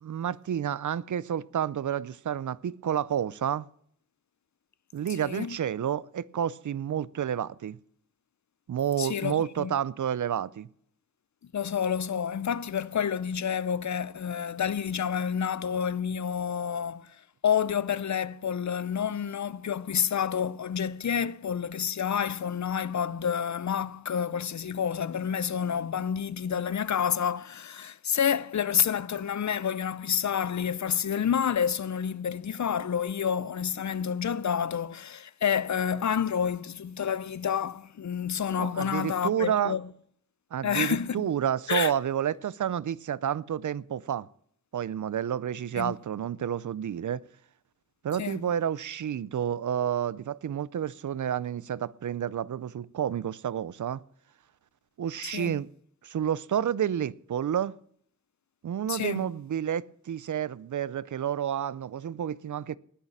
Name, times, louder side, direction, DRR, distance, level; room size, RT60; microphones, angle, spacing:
voice 1, 0.0-3.7 4.9-7.8 8.7-10.7 38.6-39.7 40.5-44.3 44.7-47.2 48.0-54.0 55.0-55.7 56.0-57.7 58.6-62.8, right 9 dB, 75° right, 0.6 m, -30 dB
voice 2, 5.1-5.6 9.0-9.7 11.5-17.2 17.4-39.8 40.6-41.2 41.7-41.9 45.7-45.9 48.2-48.4 55.2-55.6 58.9-59.3, left 8 dB, 65° left, 0.7 m, -29 dB
19.5 x 6.6 x 7.1 m
cardioid pair, 60°, 30 cm